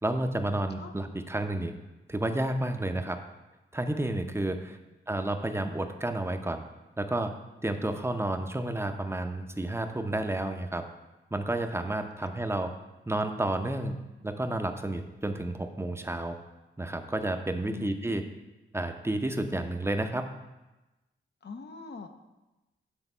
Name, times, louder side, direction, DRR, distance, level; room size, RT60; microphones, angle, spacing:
voice 1, 0.0-1.8 2.1-3.2 3.7-4.8 5.1-6.6 7.0-7.3 7.6-10.8 11.3-12.7 13.1-14.0 14.2-16.4 16.8-18.2 18.7-20.3, right 1 dB, 10° right, 6 dB, 0.7 m, -31 dB
voice 2, 17.7-18.2 21.4-22.1, left 5 dB, 55° left, 6 dB, 0.7 m, -43 dB
8.2 x 3.5 x 5.4 m, 1.1 s
cardioid pair, 45°, 21 cm